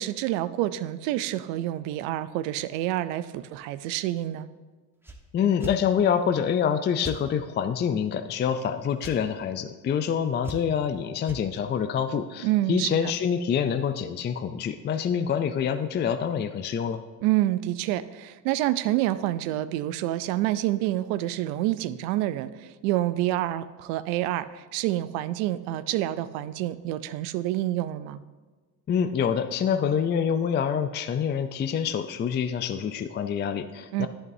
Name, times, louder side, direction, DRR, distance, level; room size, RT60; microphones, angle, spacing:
voice 1, 0.0-4.5 12.4-13.1 17.2-28.2 33.9-34.1, right 14 dB, 85° right, 15 dB, 0.5 m, -28 dB
sound 1, 5.0-5.2 5.6-5.8 7.0-7.2 9.0-9.2 10.4-10.8 11.2-11.4, right 1 dB, 5° right, 1.0 m, -38 dB
voice 2, 5.3-17.0 28.9-34.1, left 7 dB, 25° left, 9 dB, 0.4 m, -26 dB
11.0 x 8.1 x 2.7 m, 1.3 s
supercardioid pair, 85°, 42 cm